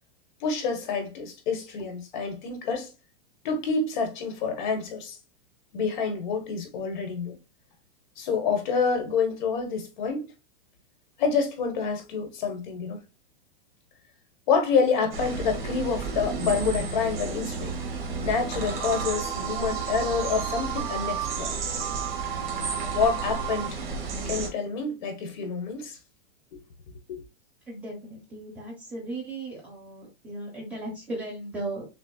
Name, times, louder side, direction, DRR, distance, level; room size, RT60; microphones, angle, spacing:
voice 1, 0.4-2.9 3.4-5.2 5.7-7.4 8.2-10.3 11.2-13.0 14.5-17.8 18.2-21.6 22.9-23.8 24.3-26.0 27.1-27.2, left 5 dB, 55° left, 1.3 m, -27 dB
sound 1, 15.1-24.5, right 4 dB, 55° right, 1.8 m, -33 dB
sound 2, 18.6-23.7, right 12 dB, 40° right, 0.4 m, -34 dB
voice 2, 27.7-31.8, right 2 dB, 5° right, 1.1 m, -36 dB
6.4 x 2.2 x 2.3 m
supercardioid pair, 170°, 29 cm